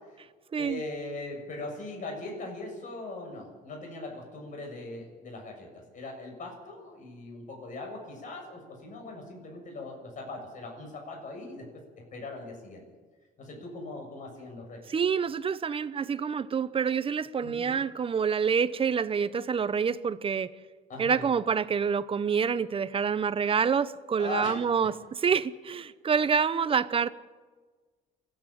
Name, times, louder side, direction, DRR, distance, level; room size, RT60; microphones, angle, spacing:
voice 1, 0.6-5.7 5.9-11.7 12.1-12.8 13.4-14.8 17.4-17.8 20.9-21.3 24.2-24.7, left 2 dB, 50° left, 1 dB, 6.9 m, -40 dB
voice 2, 14.9-20.5 21.0-27.1, right 6 dB, 35° right, 15 dB, 0.9 m, -27 dB
30.0 x 10.5 x 8.8 m, 1.4 s
cardioid pair, 110°, 17 cm